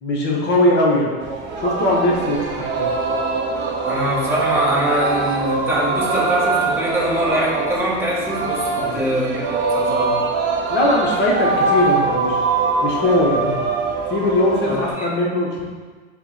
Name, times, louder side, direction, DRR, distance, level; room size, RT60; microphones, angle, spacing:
voice 1, 0.0-1.2 1.6-2.9 8.7-9.0 10.7-12.4 12.8-13.6 14.1-15.6, left 1 dB, 30° left, -2 dB, 0.8 m, -20 dB
Singing, 1.2-14.9, right 3 dB, 35° right, 0.5 m, -23 dB
voice 2, 3.8-9.4 9.7-10.2 14.7-15.1, right 1 dB, 5° right, -6 dB, 0.9 m, -23 dB
4.3 x 2.1 x 4.0 m, 1.4 s
hypercardioid pair, 110°, 35 cm